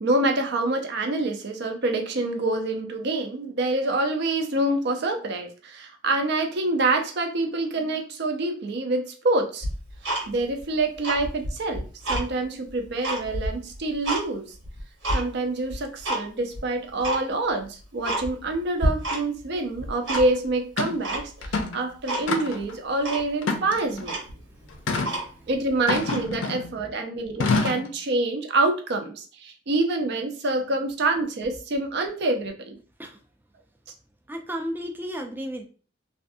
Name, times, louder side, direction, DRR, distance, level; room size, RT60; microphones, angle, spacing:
voice 1, 0.0-9.7 10.3-14.5 15.1-24.1 25.5-32.8, right 2 dB, 65° right, 5 dB, 0.5 m, -26 dB
Tick-tock, 9.6-10.6 10.9-12.3 12.7-14.2 14.6-15.2 15.7-16.2 16.5-16.6 17.0-17.2 17.6-17.7 18.0-18.5 18.8-19.5 19.7-20.5 21.0-21.6 22.1-22.3 22.6-22.7 23.0-23.3 23.7-23.8 24.0-25.5 26.0-26.2, right 1 dB, 85° right, 1.2 m, -29 dB
sound 1, 20.1-20.2 20.8-21.0 21.4-21.8 22.3-22.7 23.4-24.1 24.9-25.1 25.9-26.7 27.4-27.9, left 3 dB, 80° left, 0.5 m, -27 dB
voice 2, 34.3-35.7, equal, 10° right, 3 dB, 0.4 m, -33 dB
2.5 x 2.3 x 2.6 m, 0.38 s
head